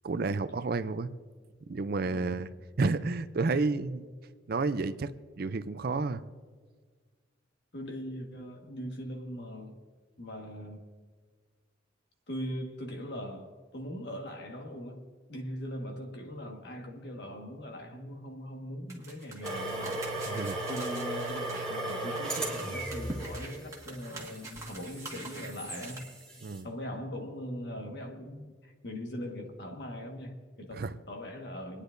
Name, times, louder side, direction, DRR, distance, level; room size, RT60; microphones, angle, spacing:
voice 1, 0.0-1.1 1.7-2.5 2.8-4.1 4.5-5.1 5.4-6.2 20.3-20.6 26.4-26.7 30.8-30.9, right 3 dB, 50° right, 13 dB, 0.4 m, -30 dB
voice 2, 2.0-2.4 7.7-9.8 10.2-10.8 12.3-20.0 20.7-26.1 26.6-31.8, equal, 55° left, 2 dB, 1.6 m, -40 dB
sound 1, 18.9-26.0, right 2 dB, 15° right, 1.6 m, -45 dB
sound 2, 19.4-26.6, right 1 dB, 5° left, 2.2 m, -37 dB
28.5 x 9.9 x 2.6 m, 1.5 s
head